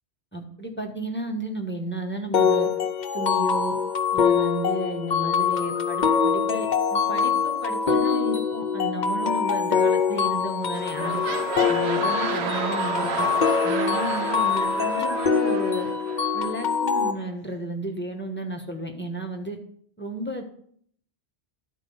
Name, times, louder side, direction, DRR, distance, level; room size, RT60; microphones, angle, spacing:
voice 1, 0.3-2.7 3.1-3.8 4.1-11.2 11.7-13.3 13.6-15.9 16.3-19.6 20.0-20.4, right 1 dB, 10° left, 2 dB, 1.1 m, -33 dB
sound 1, 2.3-17.1, left 6 dB, 45° left, 0.8 m, -24 dB
sound 2, 10.2-10.4 10.7-16.5 17.2-17.3, right 5 dB, 75° right, 1.0 m, -31 dB
11.5 x 4.6 x 5.5 m, 0.62 s
omnidirectional pair, 1.1 m